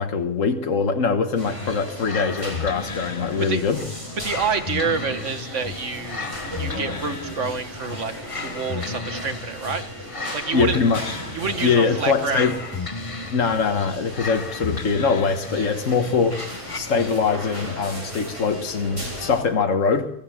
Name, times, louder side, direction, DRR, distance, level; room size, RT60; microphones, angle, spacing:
voice 1, 0.0-3.8 10.5-11.2 11.6-12.6 13.3-16.4 16.7-20.1, left 5 dB, 80° left, 6 dB, 1.7 m, -22 dB
sound 1, 1.4-19.4, equal, 25° right, 7.8 m, -36 dB
sound 2, 1.6-17.5, left 4 dB, 30° left, 0.9 m, -34 dB
voice 2, 4.2-6.2 6.6-8.1 8.4-9.9 10.3-10.8 11.3-12.5, right 5 dB, 70° right, 9 dB, 1.9 m, -27 dB
24.0 x 15.5 x 7.4 m, 0.74 s
omnidirectional pair, 1.3 m